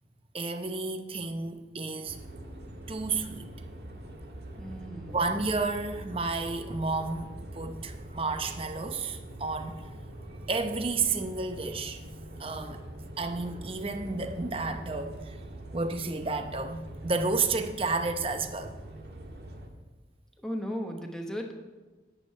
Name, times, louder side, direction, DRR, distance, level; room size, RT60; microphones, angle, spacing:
voice 1, 0.3-2.2 2.9-3.5 5.1-9.9 10.5-12.0 12.4-12.8 13.2-15.4 15.7-18.8, right 3 dB, 30° right, 0.8 m, -31 dB
sound 1, 2.1-19.7, right 1 dB, 70° right, 1.5 m, -43 dB
voice 2, 4.6-5.2 20.4-21.5, equal, 5° left, 1.0 m, -36 dB
11.0 x 5.3 x 8.5 m
head